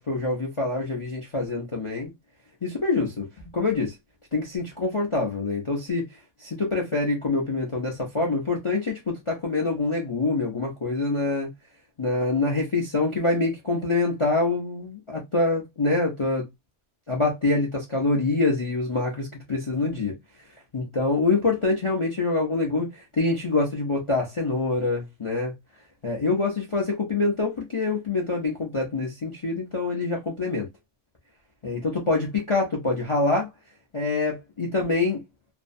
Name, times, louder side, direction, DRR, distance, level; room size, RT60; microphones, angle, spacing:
voice 1, 0.0-2.1 2.6-3.3 3.5-3.9 4.3-6.0 6.4-11.5 12.0-14.9 15.3-16.5 17.1-20.1 20.7-25.5 26.0-30.7 31.6-33.5 33.9-35.2, left 3 dB, 50° left, 0.3 m, -25 dB
2.7 x 2.1 x 2.5 m
omnidirectional pair, 1.5 m